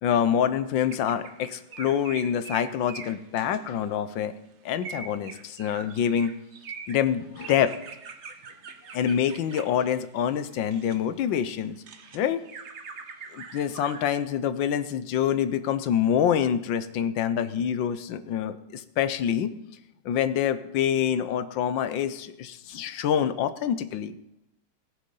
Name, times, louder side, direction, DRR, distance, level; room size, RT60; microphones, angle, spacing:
voice 1, 0.0-4.3 4.6-6.3 6.9-7.7 8.9-11.8 12.1-12.4 13.3-19.5 20.0-24.2, left 9 dB, 70° left, 12 dB, 1.3 m, -26 dB
sound 1, 0.9-4.1 4.7-11.0 11.5-14.1, right 5 dB, 55° right, 0.8 m, -43 dB
18.5 x 6.5 x 5.5 m, 0.85 s
omnidirectional pair, 2.3 m